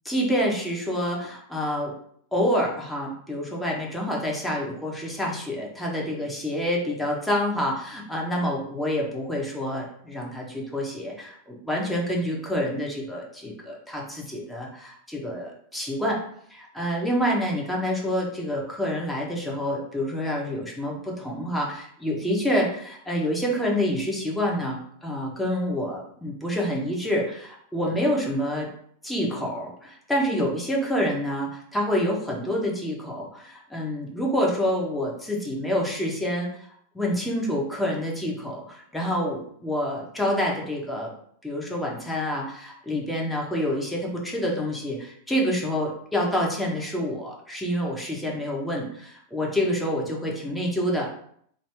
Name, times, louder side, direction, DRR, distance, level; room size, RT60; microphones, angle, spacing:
voice 1, 0.1-1.9 2.3-16.2 16.5-28.7 29.0-36.7 36.9-41.1 41.4-51.1, equal, 5° left, -2 dB, 0.9 m, -27 dB
2.7 x 2.5 x 3.3 m, 0.65 s
figure-of-eight pair, 90°, 0 cm